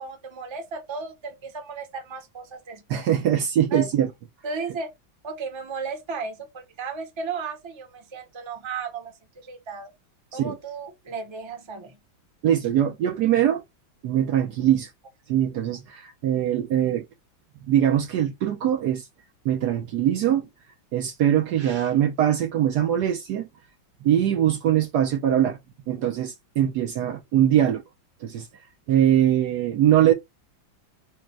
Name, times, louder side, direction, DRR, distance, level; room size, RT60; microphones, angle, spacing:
voice 1, 0.0-3.0 3.7-3.9 4.4-4.9 5.2-9.9 10.3-12.0, right 4 dB, 25° right, 0.7 m, -35 dB
voice 2, 2.9-4.1 10.3-10.6 12.4-13.6 14.0-14.9 15.3-17.0 17.7-19.1 19.4-20.5 20.9-23.5 24.0-25.6 25.9-27.8 28.2-28.5 28.9-30.1, right 11 dB, 70° right, 1.1 m, -22 dB
5.1 x 2.2 x 4.4 m
omnidirectional pair, 2.1 m